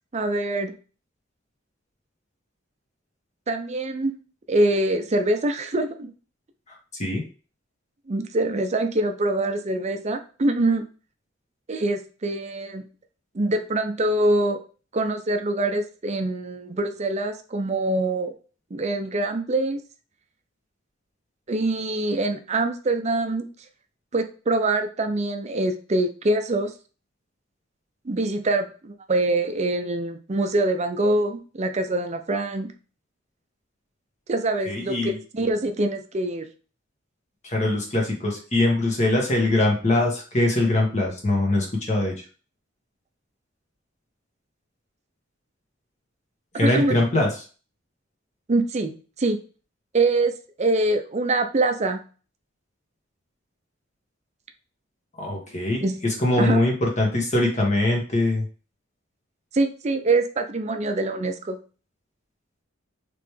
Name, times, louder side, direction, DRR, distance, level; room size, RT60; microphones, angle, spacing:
voice 1, 0.1-0.7 3.5-4.1 4.5-6.1 8.1-10.8 11.7-12.8 13.3-14.6 14.9-18.3 18.7-19.8 21.5-23.5 24.1-26.7 28.0-32.7 34.3-36.5 46.6-46.9 48.5-48.9 49.2-49.4 49.9-52.0 55.8-56.0 56.4-56.6 59.5-61.6, right 2 dB, 35° right, 7 dB, 0.5 m, -24 dB
voice 2, 34.7-35.1 37.4-42.1 46.5-47.3 55.2-58.4, left 2 dB, 35° left, -1 dB, 1.4 m, -22 dB
4.1 x 3.3 x 3.2 m, 0.37 s
head